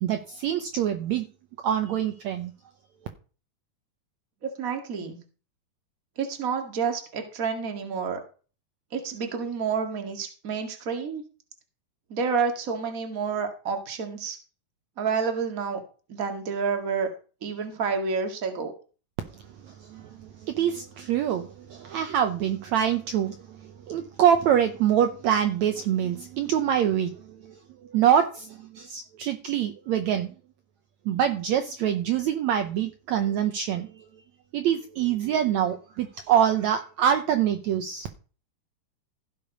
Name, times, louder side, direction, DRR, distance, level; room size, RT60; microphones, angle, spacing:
voice 1, 0.0-1.3 1.6-2.5 19.6-27.6 27.8-30.3 31.1-34.1 34.5-38.1, right 9 dB, 70° right, 1.9 m, -25 dB
voice 2, 4.4-5.2 6.2-8.2 8.9-11.2 12.1-14.4 15.0-15.8 16.1-17.1 17.4-18.7, right 5 dB, 30° right, 1.8 m, -29 dB
16.0 x 6.9 x 5.3 m
omnidirectional pair, 3.9 m